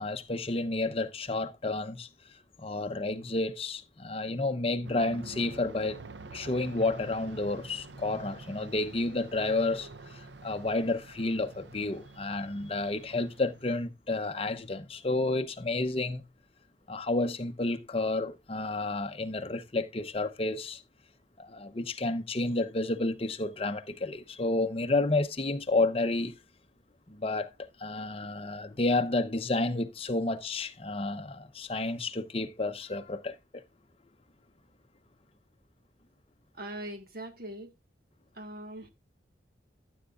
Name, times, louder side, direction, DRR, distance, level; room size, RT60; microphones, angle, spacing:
voice 1, 0.0-2.1 2.6-6.0 6.3-16.2 16.9-20.8 21.4-26.4 27.1-27.5 27.8-33.3, left 2 dB, 30° left, 0.7 m, -30 dB
Aircraft, 4.8-13.9, right 3 dB, 70° right, 0.7 m, -47 dB
voice 2, 36.5-37.7 38.3-38.9, right 1 dB, 55° right, 1.5 m, -41 dB
13.5 x 7.9 x 2.4 m
head